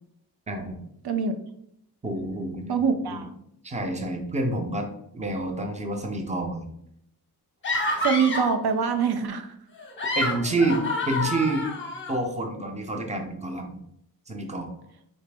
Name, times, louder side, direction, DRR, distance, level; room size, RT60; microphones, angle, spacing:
voice 1, 0.5-0.8 2.0-2.8 3.1-3.2 3.6-4.9 5.1-6.7 10.1-11.7 12.1-13.8 14.3-14.7, right 2 dB, 20° right, 3 dB, 0.6 m, -28 dB
voice 2, 2.7-3.3 8.0-9.5, right 6 dB, 75° right, 7 dB, 0.5 m, -24 dB
sound 1, 7.6-8.6 9.8-12.2, left 2 dB, 30° left, 0.7 m, -28 dB
4.1 x 2.9 x 3.3 m, 0.73 s
wide cardioid pair, 135°, 38 cm